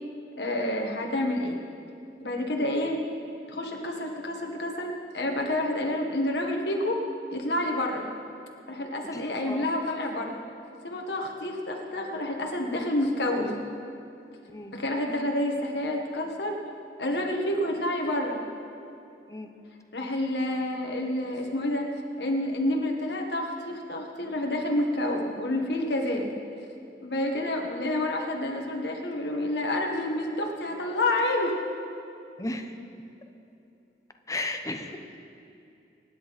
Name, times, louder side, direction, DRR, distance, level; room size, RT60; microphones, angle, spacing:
voice 1, 0.4-1.6 2.2-3.0 3.5-7.0 7.3-8.1 8.7-10.4 10.8-13.6 14.7-16.6 17.0-18.4 19.9-21.9 22.2-26.3 27.0-31.6 34.8-35.0, left 1 dB, 65° left, 1 dB, 1.6 m, -29 dB
voice 2, 9.1-9.7 14.5-14.7 19.3-19.5 26.2-26.4 32.4-32.7 34.3-35.0, left 2 dB, 20° left, 5 dB, 0.9 m, -35 dB
25.0 x 10.5 x 4.3 m, 2.7 s
head